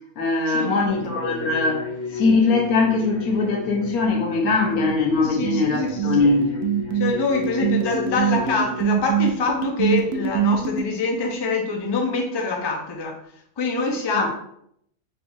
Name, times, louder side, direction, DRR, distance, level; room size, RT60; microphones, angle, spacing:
voice 1, 0.2-6.5 14.1-14.3, left 3 dB, 90° left, 1 dB, 1.4 m, -21 dB
sound 1, 0.9-8.8, left 4 dB, 55° left, 1.2 m, -34 dB
sound 2, 4.5-10.8, right 9 dB, 85° right, 1.1 m, -23 dB
voice 2, 5.2-6.3 6.9-13.2 13.6-14.3, left 3 dB, 30° left, 0 dB, 0.4 m, -25 dB
4.4 x 3.6 x 2.7 m, 0.71 s
omnidirectional pair, 1.5 m